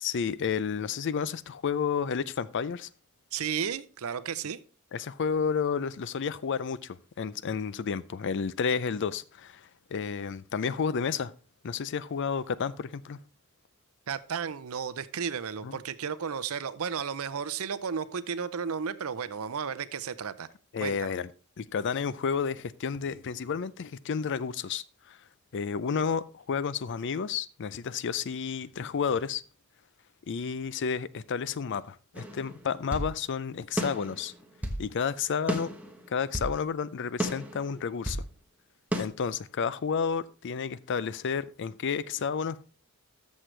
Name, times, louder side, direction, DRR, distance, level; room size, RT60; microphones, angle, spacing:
voice 1, 0.0-2.9 4.9-11.3 11.6-13.2 15.6-15.8 20.7-21.3 21.6-25.2 25.5-29.4 30.3-34.3 34.8-35.7 36.1-38.2 38.9-42.6, left 6 dB, 55° left, 0.4 m, -31 dB
voice 2, 3.3-4.6 14.1-20.5 20.8-21.1, right 6 dB, 70° right, 0.6 m, -33 dB
sound 1, 32.1-33.1 33.8-34.8 35.5-36.6 37.2-38.3 38.9-39.0, equal, 5° right, 1.1 m, -33 dB
13.5 x 6.4 x 3.2 m
head